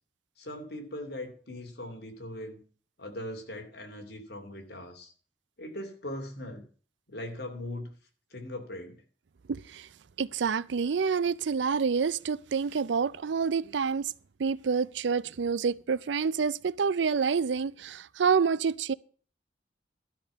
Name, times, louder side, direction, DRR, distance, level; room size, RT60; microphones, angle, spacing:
voice 1, 0.4-2.6 3.0-5.1 5.6-6.6 7.1-7.9 8.3-9.0, left 1 dB, 60° left, 2.9 m, -40 dB
voice 2, 9.5-9.9 10.2-14.1 14.4-18.9, right 5 dB, 90° right, 0.5 m, -28 dB
13.0 x 5.4 x 8.3 m
head